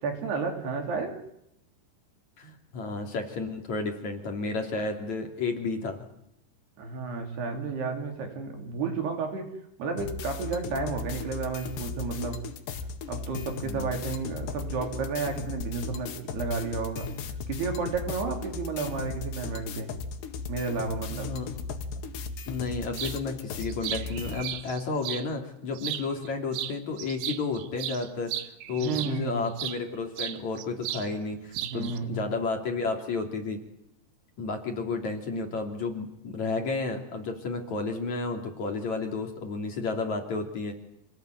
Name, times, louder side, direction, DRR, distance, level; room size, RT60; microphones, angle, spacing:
voice 1, 0.0-1.1 6.8-9.5 9.8-12.4 13.1-17.1 17.5-19.9 20.5-21.3 28.8-29.5 31.7-32.2, right 4 dB, 70° right, 4 dB, 5.4 m, -32 dB
voice 2, 2.4-6.1 10.7-10.8 13.5-14.0 21.1-21.5 21.9-22.0 22.5-28.3 28.7-33.6 34.4-40.7, left 3 dB, 45° left, 3 dB, 3.9 m, -32 dB
sound 1, 10.0-24.4, left 4 dB, 80° left, 4.0 m, -37 dB
sound 2, 23.0-23.2 23.6-25.3 25.8-26.3 26.5-29.8 30.2-31.1 31.3-32.0, right 12 dB, 85° right, 3.4 m, -35 dB
28.0 x 18.5 x 9.4 m, 0.79 s
omnidirectional pair, 4.8 m